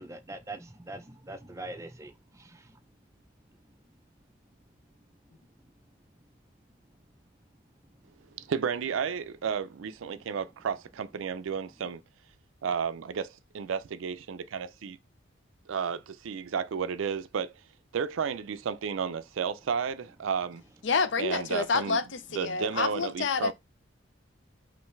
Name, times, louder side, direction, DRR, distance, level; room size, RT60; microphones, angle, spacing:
voice 1, 0.0-2.1 2.4-2.6, right 2 dB, 15° right, 0.4 m, -42 dB
voice 2, 8.4-12.0 12.6-15.0 15.7-17.5 17.9-20.6 21.2-22.0 22.3-23.5, right 6 dB, 80° right, 0.4 m, -32 dB
voice 3, 20.8-23.5, left 5 dB, 60° left, 0.5 m, -28 dB
5.5 x 2.6 x 3.1 m
head